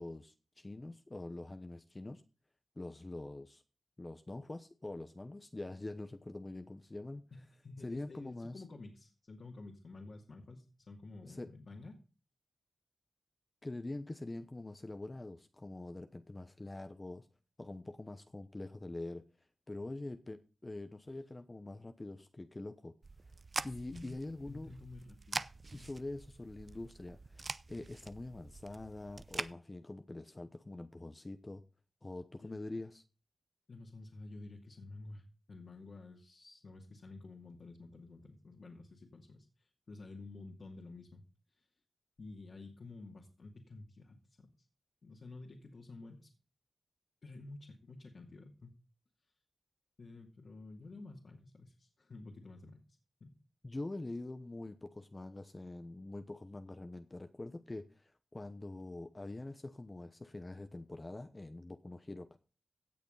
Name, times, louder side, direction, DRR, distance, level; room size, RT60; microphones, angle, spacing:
voice 1, 0.0-2.2 2.8-3.6 4.0-7.2 7.8-8.6 11.2-11.5 13.6-17.3 17.6-19.3 19.7-22.9 23.6-24.7 25.7-31.6 32.0-33.0 53.6-62.4, left 2 dB, 25° left, 0.9 m, -45 dB
voice 2, 7.3-12.0 23.9-24.1 24.5-25.9 32.4-32.6 33.7-35.2 35.5-41.2 42.2-44.5 45.0-46.3 47.2-48.8 50.0-52.8 53.2-53.3, left 3 dB, 60° left, 2.5 m, -51 dB
sound 1, 23.0-29.5, right 3 dB, 40° right, 0.5 m, -44 dB
17.0 x 6.6 x 3.9 m
cardioid pair, 75°, 0 cm